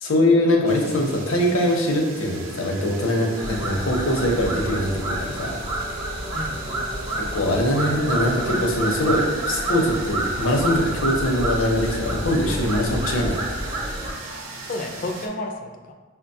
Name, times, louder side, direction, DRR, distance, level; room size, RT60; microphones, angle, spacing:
voice 1, 0.0-5.6 7.3-13.4, left 1 dB, 80° left, 0 dB, 0.7 m, -22 dB
sound 1, 0.7-15.3, right 3 dB, 75° right, 0.6 m, -39 dB
sound 2, 3.4-14.1, right 1 dB, 20° right, 0.5 m, -28 dB
voice 2, 6.3-7.2 14.6-15.9, left 2 dB, 45° left, 3 dB, 0.4 m, -32 dB
5.7 x 2.2 x 2.7 m, 1.4 s
head